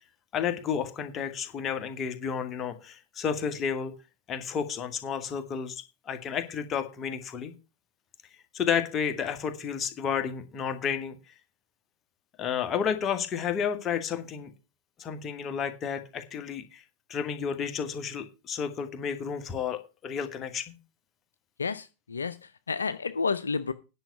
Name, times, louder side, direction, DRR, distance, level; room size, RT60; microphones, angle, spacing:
voice 1, 0.3-3.9 4.3-7.5 8.5-11.2 12.4-14.5 15.0-16.8 17.1-20.7, left 7 dB, 30° left, 7 dB, 1.9 m, -31 dB
voice 2, 21.6-23.7, left 5 dB, 75° left, 13 dB, 0.6 m, -31 dB
10.0 x 6.2 x 7.0 m, 0.30 s
figure-of-eight pair, 90°, 0 cm